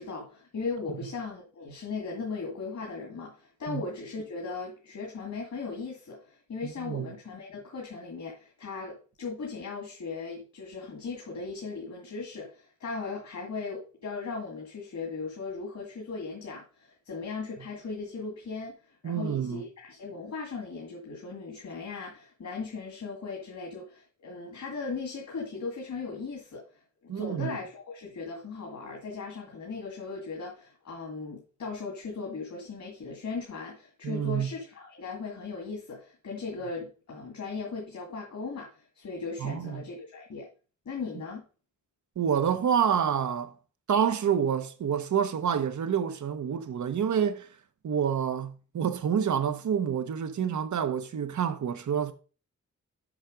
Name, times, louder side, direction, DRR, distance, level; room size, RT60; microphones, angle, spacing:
voice 1, 0.0-40.5 40.9-41.4, left 4 dB, 65° left, 2.3 m, -38 dB
voice 2, 6.6-7.1 19.0-19.6 27.1-27.6 34.0-34.5 39.4-39.8 42.2-43.6 43.9-47.5 47.8-52.1, right 8 dB, 75° right, 1.1 m, -28 dB
7.4 x 6.0 x 5.1 m
wide cardioid pair, 135°, 30 cm